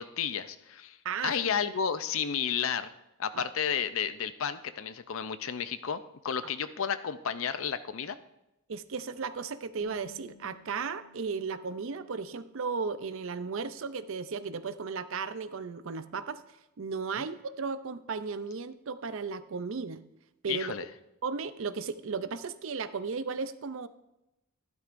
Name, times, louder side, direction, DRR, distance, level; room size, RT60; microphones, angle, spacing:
voice 1, 0.0-1.0 1.2-2.9 3.2-8.2 17.2-17.3 20.5-20.8, left 7 dB, 65° left, 12 dB, 0.5 m, -32 dB
voice 2, 1.0-1.4 3.3-3.4 8.7-16.4 16.8-20.0 20.4-20.7 21.2-23.9, right 5 dB, 60° right, 13 dB, 0.5 m, -35 dB
Bass guitar, 9.8-16.1, left 1 dB, 40° left, 1.0 m, -60 dB
12.5 x 11.5 x 2.6 m, 0.90 s
head